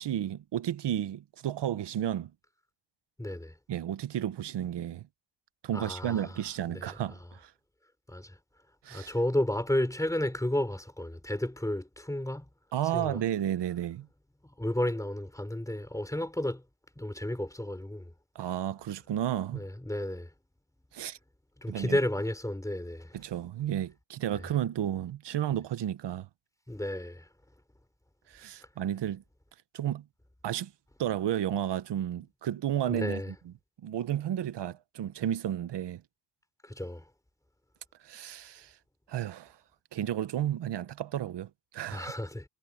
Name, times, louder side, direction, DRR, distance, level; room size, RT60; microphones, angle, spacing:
voice 1, 0.0-2.3 3.7-5.1 5.6-7.5 8.8-9.1 12.7-14.1 18.3-19.7 20.9-21.2 21.7-22.0 23.1-26.3 28.3-29.2 29.7-30.0 30.4-30.7 31.0-33.5 33.8-36.0 38.0-38.7 39.1-39.5 39.9-42.1, right 11 dB, 80° right, 1.0 m, -32 dB
voice 2, 3.2-3.5 5.7-6.3 6.7-6.9 8.1-8.4 8.9-12.4 12.9-13.2 14.6-16.6 17.0-18.1 19.6-20.3 21.6-23.2 26.7-27.2 32.9-33.3 36.6-37.0 41.9-42.4, left 1 dB, 10° left, 4.0 m, -32 dB
cardioid pair, 100°, 41 cm